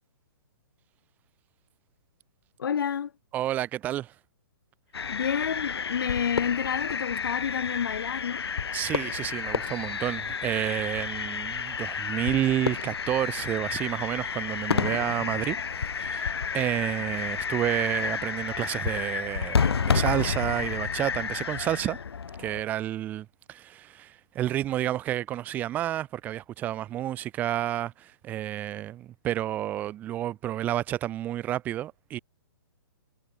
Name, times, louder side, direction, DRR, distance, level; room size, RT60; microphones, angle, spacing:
voice 1, 2.6-3.1 5.1-8.5, left 8 dB, 60° left, 4.3 m, -29 dB
voice 2, 3.3-4.1 8.7-22.0 22.4-32.2, right 12 dB, 15° right, 1.8 m, -30 dB
sound 1, 4.9-22.6, left 6 dB, 85° left, 3.2 m, -30 dB
hypercardioid pair, 170°, 13 cm